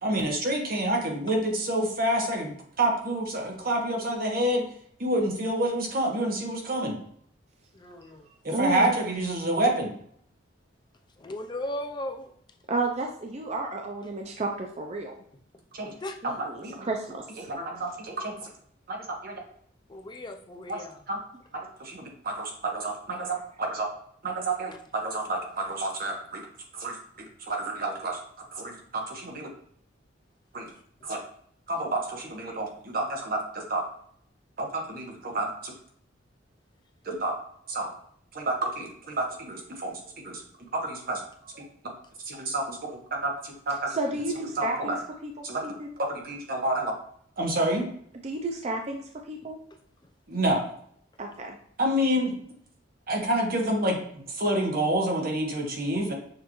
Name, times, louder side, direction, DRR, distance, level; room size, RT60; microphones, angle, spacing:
voice 1, 0.0-4.7 5.0-7.0 8.4-9.9 15.7-15.9 16.2-16.9 17.5-18.5 18.9-19.4 20.7-21.2 21.5-23.9 24.2-26.5 26.7-27.0 27.4-28.2 28.5-29.5 30.5-30.7 31.0-31.2 31.7-33.9 34.6-35.7 37.0-37.4 37.7-37.9 38.3-40.0 40.2-40.4 40.7-41.7 42.2-43.9 44.6-45.0 45.4-45.6 46.0-47.0 47.4-47.9 50.3-50.6 51.8-52.3 53.1-56.1, right 1 dB, 50° right, 1 dB, 1.1 m, -29 dB
voice 2, 7.7-8.3 11.2-12.3 16.0-16.2 19.9-21.0, left 1 dB, 25° left, 5 dB, 0.5 m, -37 dB
voice 3, 8.5-8.9 12.7-15.1 16.2-17.5 32.5-32.6 43.9-45.0 45.2-45.9 48.2-49.6 51.2-51.6, right 2 dB, 35° right, 2 dB, 0.5 m, -32 dB
6.5 x 2.6 x 3.0 m, 0.65 s
head